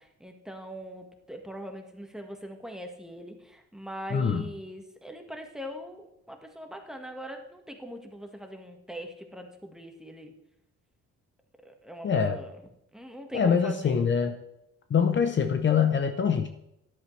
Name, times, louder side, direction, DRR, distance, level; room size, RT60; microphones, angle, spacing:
voice 1, 0.0-10.3 11.6-12.5 12.9-14.1, equal, ahead, 3 dB, 1.6 m, -41 dB
voice 2, 4.1-4.4 12.0-12.4 13.3-14.4 14.9-16.5, left 6 dB, 40° left, 7 dB, 0.8 m, -24 dB
13.0 x 10.5 x 3.3 m, 0.82 s
cardioid pair, 105°, 29 cm